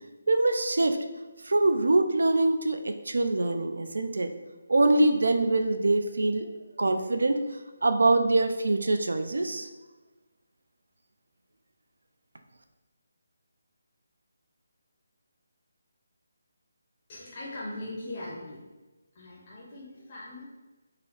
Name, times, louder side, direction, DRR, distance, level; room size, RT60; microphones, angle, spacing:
voice 1, 0.3-1.0 1.4-4.3 4.7-6.5 6.8-7.4 7.8-9.7, right 2 dB, 85° right, 7 dB, 0.3 m, -24 dB
voice 2, 17.1-18.6 19.1-20.4, left 1 dB, 30° left, -5 dB, 0.5 m, -40 dB
3.8 x 2.0 x 2.9 m, 1.2 s
hypercardioid pair, 170°, 0 cm